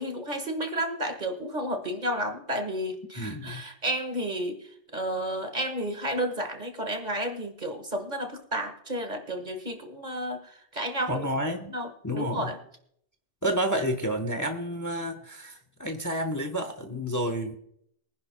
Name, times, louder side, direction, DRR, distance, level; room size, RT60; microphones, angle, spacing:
voice 1, 0.0-11.2 11.7-11.9 12.1-12.6, right 1 dB, 45° right, 5 dB, 1.7 m, -32 dB
voice 2, 3.2-3.6 11.1-11.7 12.0-12.5 13.4-17.5, equal, 20° left, 5 dB, 1.0 m, -30 dB
23.5 x 10.5 x 2.2 m, 0.70 s
omnidirectional pair, 1.1 m